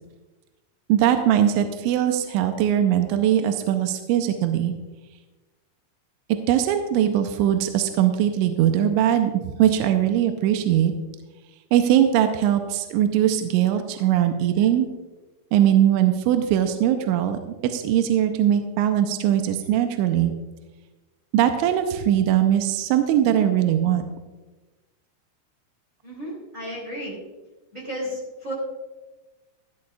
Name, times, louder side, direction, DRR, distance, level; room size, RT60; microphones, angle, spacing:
voice 1, 0.9-4.7 6.5-9.3 9.6-10.9 11.7-14.9 15.5-20.3 21.3-24.0, right 10 dB, 85° right, 7 dB, 2.9 m, -20 dB
voice 2, 26.0-27.2 27.7-28.5, equal, 25° right, -4 dB, 2.0 m, -33 dB
15.0 x 11.0 x 2.4 m, 1.1 s
omnidirectional pair, 5.7 m